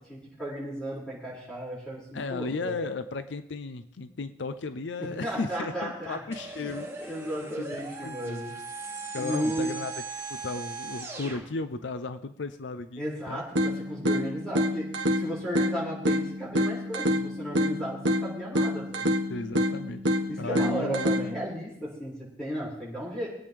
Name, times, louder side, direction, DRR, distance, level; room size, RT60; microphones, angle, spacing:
voice 1, 0.1-2.8 5.0-6.2 6.5-6.7 7.0-8.5 8.8-9.7 13.0-14.9 15.2-19.1 20.3-23.3, right 1 dB, 5° left, -7 dB, 5.8 m, -34 dB
voice 2, 2.1-7.1 8.0-8.4 9.1-9.9 10.3-13.4 19.3-20.0 20.4-21.1, left 3 dB, 75° left, 11 dB, 0.6 m, -35 dB
sound 1, 6.3-11.4, right 3 dB, 15° right, 2.4 m, -39 dB
sound 2, 13.6-21.6, equal, 85° right, 1.4 m, -28 dB
24.0 x 8.8 x 3.4 m, 0.77 s
head